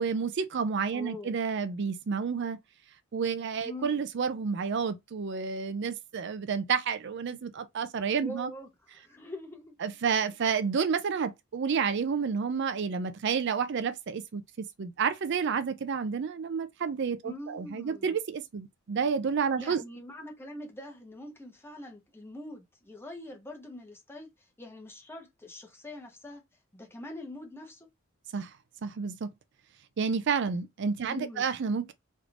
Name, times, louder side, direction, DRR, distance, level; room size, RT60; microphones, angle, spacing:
voice 1, 0.0-2.6 3.1-8.5 9.8-19.8 28.3-28.5 28.8-29.3 30.0-31.9, right 6 dB, 60° right, 0.4 m, -30 dB
voice 2, 0.9-1.4 3.6-3.9 8.2-9.7 17.2-18.2 19.6-24.3 24.6-26.4 26.7-27.9 31.0-31.5, left 1 dB, 10° left, 1.0 m, -44 dB
3.4 x 3.1 x 2.4 m
head